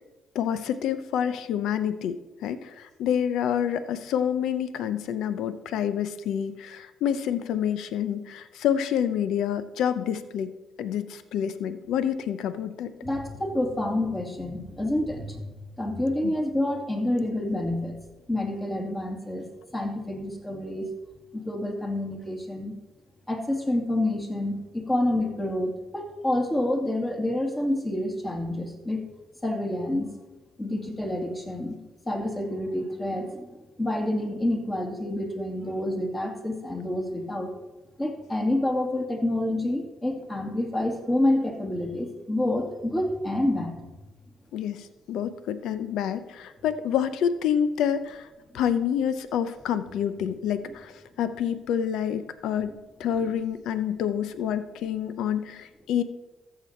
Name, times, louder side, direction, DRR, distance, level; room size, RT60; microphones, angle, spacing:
voice 1, 0.3-10.5 10.8-12.9 16.2-16.3 44.5-48.3 48.5-50.9 51.2-52.7 53.0-56.0, left 9 dB, 85° left, 12 dB, 0.6 m, -28 dB
voice 2, 13.0-18.0 18.3-21.0 21.3-22.7 23.3-29.0 29.4-30.1 30.6-31.8 32.1-37.5 38.0-44.0 50.7-50.8 52.7-52.8 53.2-53.3, left 1 dB, 20° left, 2 dB, 2.2 m, -28 dB
14.0 x 6.8 x 4.4 m, 1.1 s
cardioid pair, 90°, 0 cm